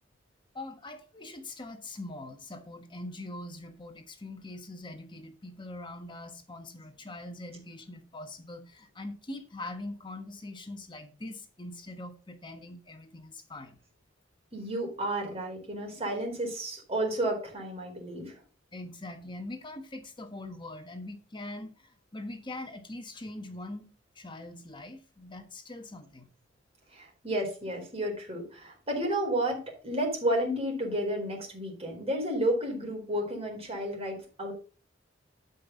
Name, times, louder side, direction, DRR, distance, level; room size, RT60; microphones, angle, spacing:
voice 1, 0.5-13.8 18.7-23.9 24.1-26.3, left 2 dB, 25° left, 1.4 m, -42 dB
voice 2, 14.5-18.3 26.9-34.5, right 1 dB, 35° right, 4.4 m, -31 dB
12.5 x 5.5 x 3.9 m
head